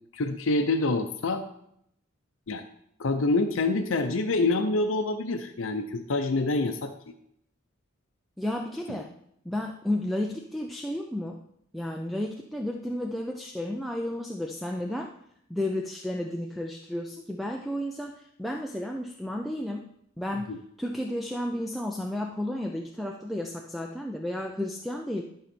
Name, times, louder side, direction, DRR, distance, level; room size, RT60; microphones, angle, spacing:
voice 1, 0.1-1.4 2.5-2.7 3.0-7.1 8.9-9.0 20.5-20.6, left 2 dB, 75° left, 6 dB, 0.6 m, -26 dB
voice 2, 8.4-9.1 9.4-11.4 11.7-15.1 15.5-19.8 20.2-25.2, left 1 dB, ahead, 2 dB, 0.5 m, -32 dB
12.0 x 5.6 x 4.3 m, 0.73 s
head